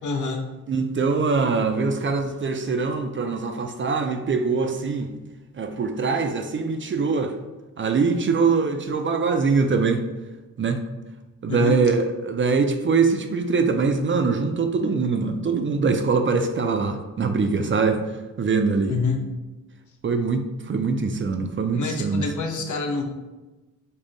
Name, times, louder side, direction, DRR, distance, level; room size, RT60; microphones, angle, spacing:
voice 1, 0.0-0.4 11.5-11.8 18.9-19.2 21.7-23.0, left 4 dB, 65° left, 3 dB, 0.6 m, -26 dB
voice 2, 0.7-5.1 5.6-7.3 7.8-10.0 10.6-10.8 11.4-18.0 18.4-18.9 20.0-22.3, right 4 dB, 40° right, 6 dB, 0.4 m, -23 dB
3.6 x 2.1 x 3.8 m, 1.1 s
cardioid pair, 70°, 32 cm